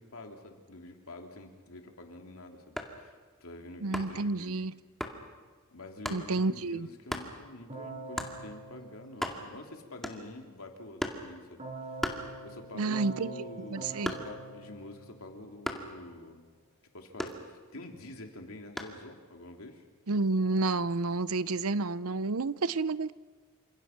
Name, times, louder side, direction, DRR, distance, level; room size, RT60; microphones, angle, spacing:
voice 1, 0.0-3.1 3.4-4.7 5.7-11.6 12.4-16.5 16.9-19.8, left 2 dB, 70° left, 3.2 m, -47 dB
sound 1, 2.7-3.0 3.9-4.3 5.0-5.2 6.0-6.3 7.1-7.3 8.2-8.4 8.8-8.9 9.1-9.6 10.0-10.4 11.0-11.3 12.0-12.8 13.1-14.5 15.6-16.0 17.2-17.9 18.8-19.0, equal, ahead, 2.2 m, -36 dB
voice 2, 3.8-4.8 6.1-6.9 12.7-13.4 13.7-14.1 20.1-23.1, right 3 dB, 75° right, 0.7 m, -30 dB
Keyboard (musical), 7.7-10.0 11.6-15.9, right 3 dB, 30° right, 7.2 m, -45 dB
29.0 x 27.0 x 6.0 m
head